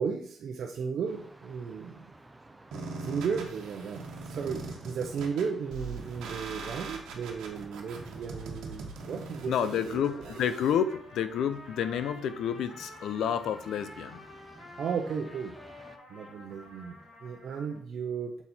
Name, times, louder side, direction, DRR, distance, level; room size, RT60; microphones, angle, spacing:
voice 1, 0.0-2.0 3.0-10.0 14.8-15.5 16.1-18.4, right 6 dB, 60° right, 1 dB, 0.7 m, -35 dB
sound 1, 1.1-16.0, right 2 dB, 15° right, 0.6 m, -54 dB
sound 2, 2.7-10.7, right 4 dB, 85° right, 1.2 m, -41 dB
voice 2, 9.5-14.2, left 8 dB, 75° left, 12 dB, 0.5 m, -30 dB
Trumpet, 9.9-17.8, left 2 dB, 60° left, 3.0 m, -49 dB
6.9 x 4.2 x 4.3 m, 0.63 s
cardioid pair, 90°, 0 cm